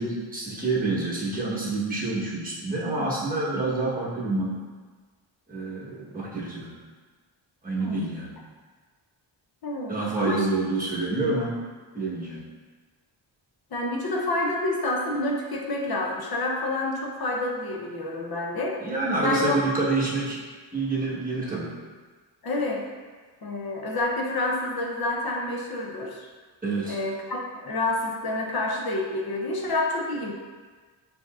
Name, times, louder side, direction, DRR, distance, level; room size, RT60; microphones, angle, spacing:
voice 1, 0.0-4.6 5.5-6.7 7.6-8.4 9.9-11.5 11.9-12.4 18.8-20.4 20.7-21.7 26.6-27.0, right 3 dB, 20° right, -6 dB, 1.1 m, -27 dB
voice 2, 9.6-10.5 13.7-18.8 19.2-19.7 22.4-22.9 23.4-26.3 26.9-30.3, left 2 dB, 55° left, -1 dB, 0.7 m, -28 dB
6.8 x 2.8 x 2.4 m, 1.4 s
wide cardioid pair, 120°, 46 cm